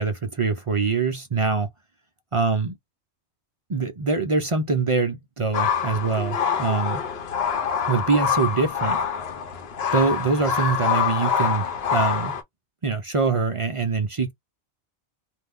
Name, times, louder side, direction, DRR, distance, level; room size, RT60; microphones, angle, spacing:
voice 1, 0.0-1.7 2.3-2.8 3.7-7.0 7.8-9.0 9.9-12.4 12.8-14.3, right 4 dB, 50° right, 0.4 m, -24 dB
sound 1, 5.5-12.4, left 7 dB, 65° left, 1.0 m, -25 dB
2.6 x 2.2 x 3.5 m
omnidirectional pair, 1.2 m